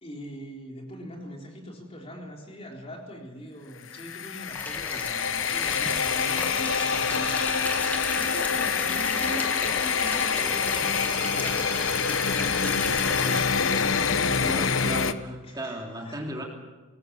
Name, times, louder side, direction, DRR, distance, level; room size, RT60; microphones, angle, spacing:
voice 1, 0.0-7.3 8.1-12.0 15.4-16.2, equal, 30° left, 0 dB, 3.9 m, -42 dB
sound 1, 3.9-15.1, left 6 dB, 85° left, 1.0 m, -26 dB
sound 2, 4.5-13.4, left 1 dB, 10° left, 2.1 m, -34 dB
voice 2, 14.4-16.4, right 1 dB, 20° right, 0 dB, 3.0 m, -35 dB
23.0 x 19.0 x 7.0 m, 1.2 s
head